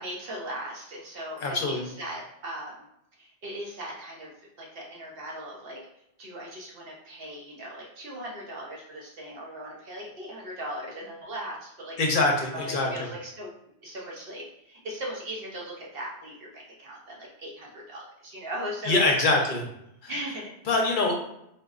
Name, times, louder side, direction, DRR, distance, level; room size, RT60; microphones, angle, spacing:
voice 1, 0.0-2.8 3.2-5.8 6.2-13.5 13.8-19.5 20.1-20.5, right 1 dB, 60° right, -3 dB, 1.0 m, -39 dB
voice 2, 1.4-1.9 12.0-13.1 18.9-19.6 20.0-20.1 20.7-21.1, left 2 dB, 55° left, 1 dB, 0.7 m, -24 dB
3.6 x 2.6 x 2.4 m, 0.79 s
omnidirectional pair, 1.2 m